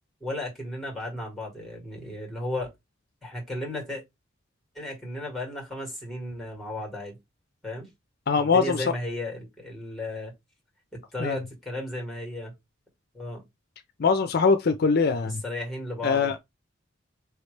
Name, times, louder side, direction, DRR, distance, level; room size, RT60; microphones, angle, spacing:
voice 1, 0.2-2.7 3.2-4.0 4.8-7.2 7.6-7.9 8.3-10.3 10.9-12.5 13.1-13.4 15.2-16.4, left 1 dB, ahead, 1.8 m, -34 dB
voice 2, 8.3-8.8 11.2-11.4 14.0-15.4 16.0-16.4, left 5 dB, 50° left, 0.4 m, -22 dB
4.8 x 3.1 x 3.2 m
head